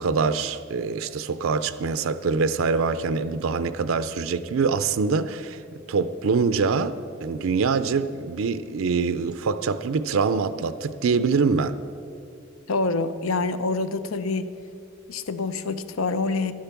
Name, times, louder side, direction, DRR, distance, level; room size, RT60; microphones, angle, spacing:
voice 1, 0.0-5.6 5.9-11.8, right 5 dB, 80° right, 0.5 m, -24 dB
voice 2, 12.7-14.5 15.1-16.5, left 3 dB, 90° left, 0.6 m, -26 dB
12.0 x 10.5 x 5.9 m
head